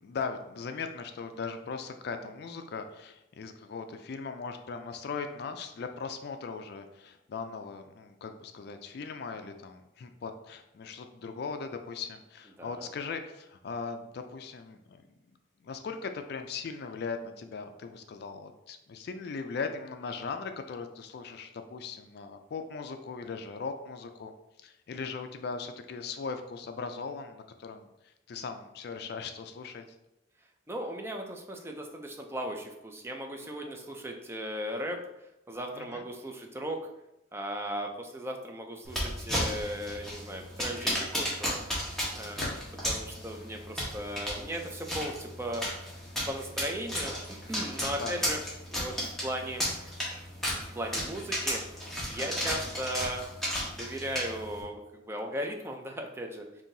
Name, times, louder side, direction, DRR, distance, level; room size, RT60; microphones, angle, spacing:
voice 1, 0.0-15.0 15.6-24.3 24.6-29.8 35.7-36.0 42.2-42.5 47.8-48.2, left 5 dB, 55° left, 7 dB, 0.3 m, -39 dB
voice 2, 12.6-12.9 30.7-36.8 37.3-41.6 42.1-42.4 42.9-45.7 46.3-48.4 48.7-49.7 50.7-51.6 52.1-53.2 53.7-56.4, right 1 dB, 15° right, 2 dB, 0.4 m, -37 dB
sound 1, 38.8-54.6, equal, ahead, 1.0 m, -34 dB
5.5 x 2.6 x 2.6 m, 0.89 s
head